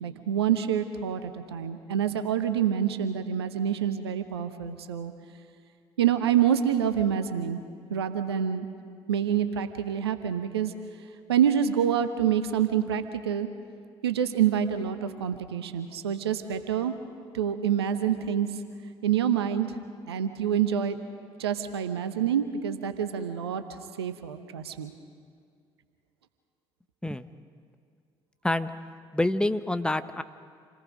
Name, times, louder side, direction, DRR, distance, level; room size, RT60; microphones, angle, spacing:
voice 1, 0.0-5.1 6.0-7.6 7.9-8.7 9.1-10.7 11.3-13.5 14.0-16.9 17.3-18.5 19.0-19.7 20.1-21.0 21.4-23.6 24.0-24.9, right 9 dB, 80° right, 10 dB, 0.9 m, -27 dB
voice 2, 29.1-30.2, left 1 dB, 5° left, 11 dB, 0.9 m, -27 dB
28.0 x 18.5 x 5.3 m, 2.1 s
figure-of-eight pair, 50°, 13 cm